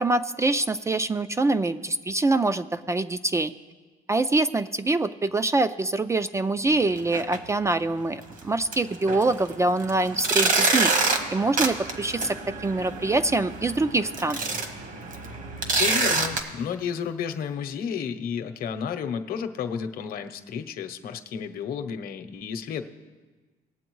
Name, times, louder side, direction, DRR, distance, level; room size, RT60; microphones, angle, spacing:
voice 1, 0.0-3.5 4.1-14.4, right 2 dB, 15° right, 12 dB, 0.3 m, -25 dB
sound 1, 7.0-7.4 7.7-7.8 8.3-8.4 8.7-16.4, right 3 dB, 50° right, 1.3 m, -27 dB
voice 2, 15.7-22.8, left 7 dB, 60° left, 8 dB, 0.8 m, -32 dB
19.5 x 7.7 x 3.1 m, 1.3 s
cardioid pair, 110°, 17 cm